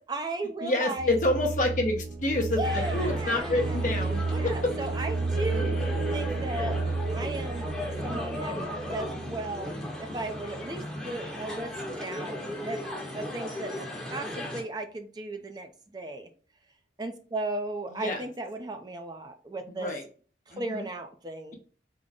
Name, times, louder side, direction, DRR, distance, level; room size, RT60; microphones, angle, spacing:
voice 1, 0.1-1.1 2.5-3.9 4.3-5.9 6.1-6.8 7.1-7.7 8.0-9.7 10.0-12.4 12.6-12.8 13.1-13.7 14.1-16.3 17.0-19.9 20.5-21.5, right 2 dB, 25° right, 5 dB, 0.4 m, -36 dB
voice 2, 0.6-4.7 5.5-6.0 6.9-7.0 17.9-18.2 19.7-20.0 20.5-20.9, left 2 dB, 45° left, 2 dB, 0.8 m, -28 dB
sound 1, 1.0-10.8, right 3 dB, 75° right, 0.7 m, -32 dB
sound 2, 2.6-14.6, left 1 dB, 5° left, 0.9 m, -36 dB
3.7 x 2.1 x 3.5 m, 0.41 s
head